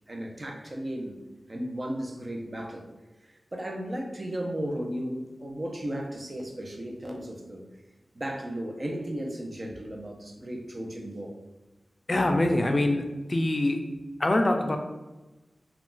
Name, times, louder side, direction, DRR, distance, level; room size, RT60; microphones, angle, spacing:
voice 1, 0.1-1.2 1.5-2.9 3.2-7.6 8.1-11.3, right 1 dB, 40° right, 1 dB, 0.6 m, -35 dB
voice 2, 12.1-13.0 13.3-13.8 14.2-14.8, left 1 dB, 45° left, 4 dB, 0.4 m, -24 dB
2.4 x 2.3 x 3.8 m, 1.1 s
cardioid pair, 45°, 0 cm